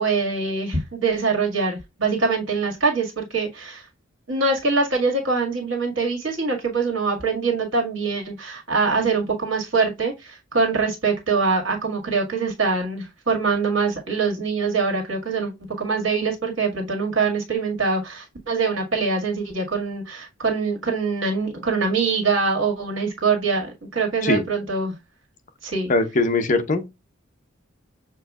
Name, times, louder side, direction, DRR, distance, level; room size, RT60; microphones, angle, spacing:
voice 1, 0.0-3.8 4.3-15.5 15.8-24.9 25.6-25.9, right 4 dB, 70° right, 1.9 m, -23 dB
voice 2, 25.9-26.8, left 2 dB, 40° left, 0.7 m, -20 dB
6.8 x 2.7 x 2.3 m
head